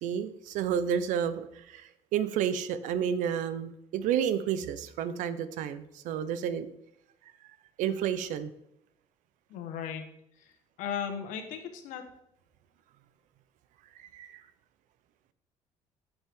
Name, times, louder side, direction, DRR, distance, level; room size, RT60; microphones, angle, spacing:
voice 1, 0.0-6.7 7.8-8.5 14.0-14.4, right 8 dB, 85° right, 13 dB, 0.7 m, -31 dB
voice 2, 9.5-10.0 10.4-10.5 10.8-12.0, left 8 dB, 85° left, 6 dB, 1.5 m, -36 dB
9.0 x 7.1 x 3.7 m, 0.80 s
cardioid pair, 150°, 13 cm